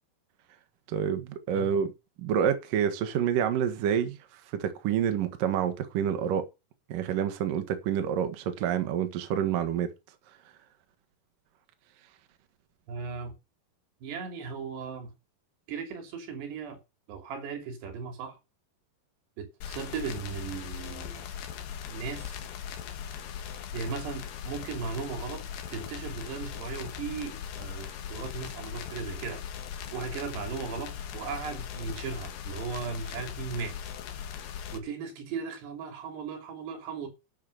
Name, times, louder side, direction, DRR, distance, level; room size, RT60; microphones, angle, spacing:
voice 1, 0.9-1.9 2.2-4.2 4.5-6.5 6.9-9.9, right 8 dB, 60° right, 2.9 m, -28 dB
voice 2, 12.9-13.3 14.0-15.1 15.7-16.8 17.1-18.4 19.4-21.3 21.9-22.4 23.7-29.4 29.9-33.8 34.7-37.1, right 5 dB, 80° right, 5.0 m, -37 dB
sound 1, 19.6-34.8, left 8 dB, 65° left, 3.1 m, -39 dB
11.5 x 7.3 x 6.4 m
omnidirectional pair, 4.8 m